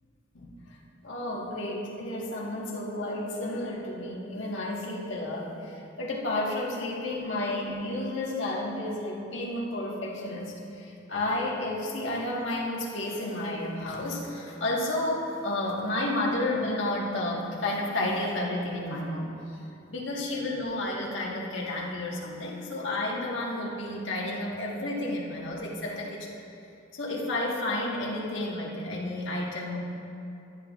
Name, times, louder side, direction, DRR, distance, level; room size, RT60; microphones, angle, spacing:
voice 1, 0.3-0.7 1.0-19.3 19.9-26.4 26.9-29.8, left 1 dB, 85° left, -3 dB, 1.7 m, -31 dB
14.5 x 10.0 x 2.5 m, 2.8 s
head